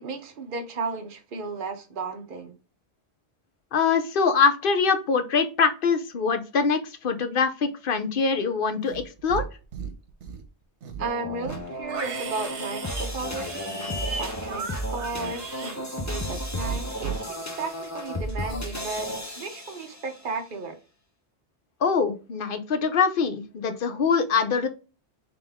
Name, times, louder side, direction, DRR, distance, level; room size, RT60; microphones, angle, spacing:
voice 1, 0.0-2.5 11.0-13.8 14.2-19.1 19.4-20.8, right 3 dB, 50° right, 1.0 m, -34 dB
voice 2, 3.7-9.4 21.8-24.7, left 5 dB, 55° left, 0.8 m, -23 dB
Livestock farm animals working animals, 8.8-9.5 9.7-10.4 10.8-16.4 16.7-17.2, right 5 dB, 90° right, 1.2 m, -35 dB
sound 1, 11.0-20.2, equal, 20° left, 0.6 m, -33 dB
3.7 x 3.4 x 3.5 m
omnidirectional pair, 1.1 m